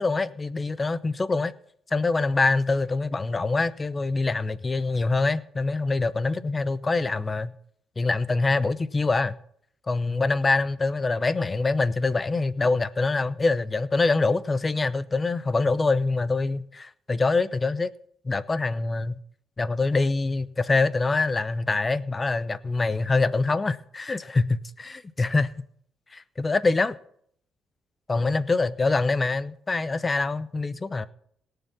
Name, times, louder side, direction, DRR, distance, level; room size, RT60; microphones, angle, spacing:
voice 1, 0.0-1.5 1.9-7.5 8.0-9.4 9.9-17.9 18.2-19.2 19.6-25.5 26.1-27.0 28.1-31.1, left 3 dB, 25° left, 0.7 m, -25 dB
18.0 x 6.9 x 6.0 m
cardioid pair, 90°, 0 cm